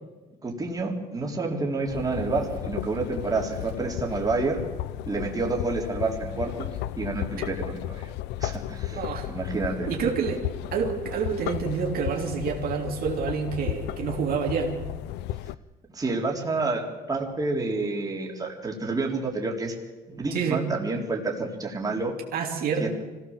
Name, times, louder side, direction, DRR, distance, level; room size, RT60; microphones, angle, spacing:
voice 1, 0.4-4.6 5.1-8.1 8.4-9.9 15.9-16.8 17.1-19.8 20.1-22.1 22.8-22.9, right 3 dB, 20° right, 0 dB, 3.8 m, -29 dB
sound 1, 1.8-15.5, left 14 dB, 90° left, 0.6 m, -34 dB
voice 2, 8.9-9.3 9.9-10.5 10.7-14.7 20.3-20.6 22.3-22.9, right 6 dB, 60° right, 0 dB, 3.3 m, -28 dB
24.5 x 17.0 x 7.4 m, 1.2 s
cardioid pair, 110°, 17 cm